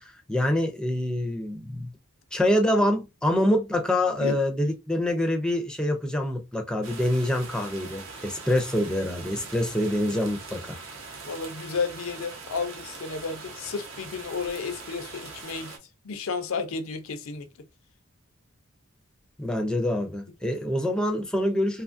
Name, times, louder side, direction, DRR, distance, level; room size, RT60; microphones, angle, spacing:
voice 1, 0.0-1.9 2.3-10.8 19.4-21.8, left 1 dB, 5° left, 0.4 m, -26 dB
sound 1, 6.8-15.8, right 4 dB, 70° right, 0.8 m, -42 dB
voice 2, 11.3-15.7 16.0-17.5, left 5 dB, 80° left, 0.5 m, -32 dB
2.9 x 2.3 x 2.5 m
head